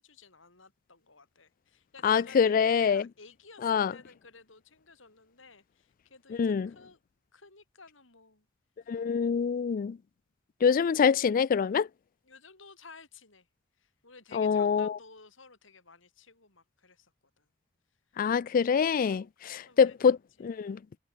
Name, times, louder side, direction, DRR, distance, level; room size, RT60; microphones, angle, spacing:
voice 1, 0.0-7.0 7.3-8.5 8.8-9.1 12.2-13.5 13.8-17.5 18.1-18.2 19.0-20.0 20.6-21.0, left 4 dB, 70° left, 5.7 m, -54 dB
voice 2, 2.0-3.1 3.6-3.9 6.3-6.7 8.9-10.0 10.6-11.9 14.3-15.0 18.2-20.8, left 6 dB, 45° left, 0.3 m, -25 dB
head